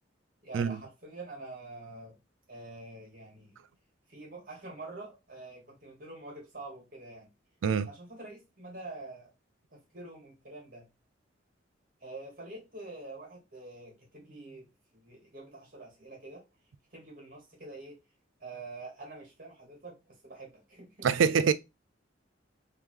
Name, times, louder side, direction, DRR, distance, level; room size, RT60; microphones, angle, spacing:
voice 1, 0.4-2.2 2.5-3.6 4.1-7.3 7.8-9.3 9.7-10.9 12.0-16.5 16.9-18.0 18.4-21.3, right 2 dB, 50° right, 1.9 m, -46 dB
voice 2, 21.0-21.5, right 6 dB, 75° right, 0.4 m, -24 dB
3.6 x 2.9 x 3.2 m
head